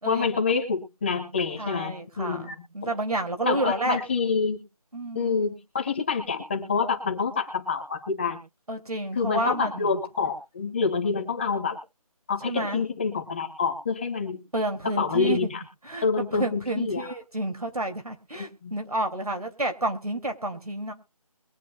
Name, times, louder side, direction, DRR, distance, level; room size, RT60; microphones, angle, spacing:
voice 1, 0.0-2.6 2.8-2.9 3.4-4.6 5.1-8.4 9.1-11.8 12.3-14.4 15.0-15.6 16.0-17.1 18.4-18.7, left 5 dB, 20° left, 4 dB, 1.2 m, -27 dB
voice 2, 1.6-4.0 4.9-5.5 8.7-10.0 12.4-12.8 14.5-15.5 15.8-20.9, right 1 dB, 80° right, 5 dB, 2.5 m, -30 dB
22.5 x 8.4 x 2.2 m, 0.33 s
figure-of-eight pair, 165°, 19 cm